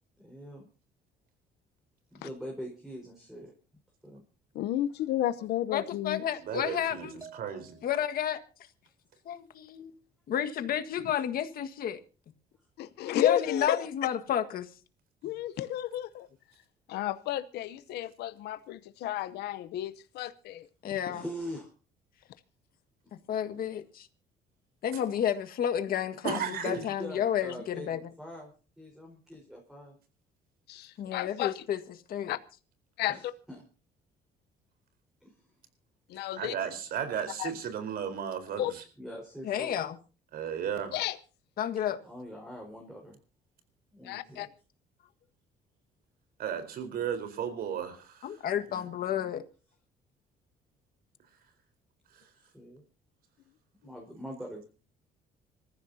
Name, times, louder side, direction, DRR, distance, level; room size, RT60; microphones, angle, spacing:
voice 1, 0.2-0.7 2.1-3.5 4.0-4.2 6.8-7.0 21.1-21.7 23.0-23.1 26.3-27.9 28.2-28.5 28.8-29.9 33.1-33.6 35.2-35.3 39.0-39.8 42.0-43.2 43.9-44.5 48.6-49.3 52.5-52.8 53.8-54.7, equal, 5° right, 4.5 m, -43 dB
voice 2, 4.5-6.2 12.8-13.8 15.2-16.3 16.9-20.7 30.7-31.6 32.3-32.4 33.0-33.3 36.1-36.5 37.4-37.5 38.6-38.7 40.9-41.2 44.0-44.5, left 13 dB, 80° left, 0.8 m, -32 dB
voice 3, 5.7-7.2 7.8-8.4 9.2-9.9 10.3-12.0 13.1-14.7 15.2-15.3 20.8-21.2 23.3-24.1 24.8-28.0 31.0-31.8 32.1-32.3 39.4-40.0 41.6-42.0 48.2-49.4, left 9 dB, 60° left, 1.7 m, -31 dB
voice 4, 6.4-7.8 26.2-26.8 36.3-38.8 40.3-41.0 46.4-48.4 52.1-52.2, right 8 dB, 65° right, 4.2 m, -35 dB
sound 1, 7.2-8.4, right 4 dB, 20° right, 5.2 m, -52 dB
27.0 x 14.5 x 2.8 m
cardioid pair, 110°, 17 cm